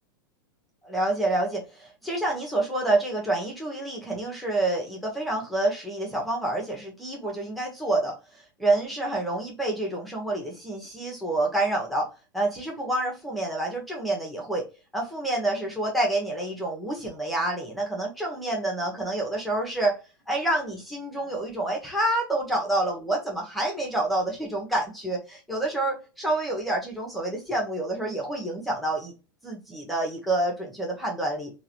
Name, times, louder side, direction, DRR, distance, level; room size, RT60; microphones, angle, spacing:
voice 1, 0.8-8.1 8.6-12.1 12.3-14.6 14.9-20.0 20.3-29.1 29.4-31.5, right 2 dB, ahead, -1 dB, 1.2 m, -28 dB
3.7 x 2.6 x 2.9 m, 0.30 s
figure-of-eight pair, 95°, 12 cm